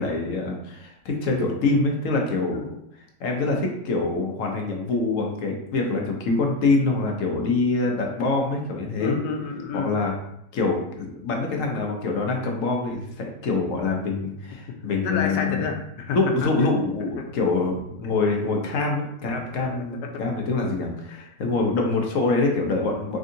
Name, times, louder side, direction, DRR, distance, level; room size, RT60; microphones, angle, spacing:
voice 1, 0.0-2.8 3.2-9.2 9.7-10.1 10.5-15.6 16.1-23.2, left 3 dB, 60° left, 1 dB, 1.0 m, -25 dB
voice 2, 9.0-9.9 15.0-16.5 17.2-17.3 19.6-20.1 21.1-21.2, left 6 dB, 85° left, 3 dB, 1.2 m, -29 dB
3.9 x 3.5 x 2.7 m, 0.73 s
omnidirectional pair, 1.8 m